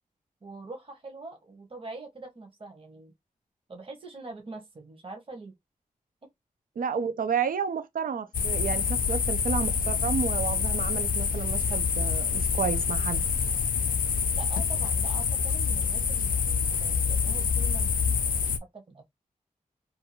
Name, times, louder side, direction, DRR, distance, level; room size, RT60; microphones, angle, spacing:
voice 1, 0.4-3.1 3.7-5.5 14.3-19.1, right 2 dB, 40° right, 0.8 m, -44 dB
voice 2, 6.8-13.2, right 6 dB, 80° right, 0.4 m, -31 dB
sound 1, 8.3-18.6, left 6 dB, 75° left, 0.4 m, -26 dB
2.5 x 2.3 x 2.9 m
wide cardioid pair, 75°, 14 cm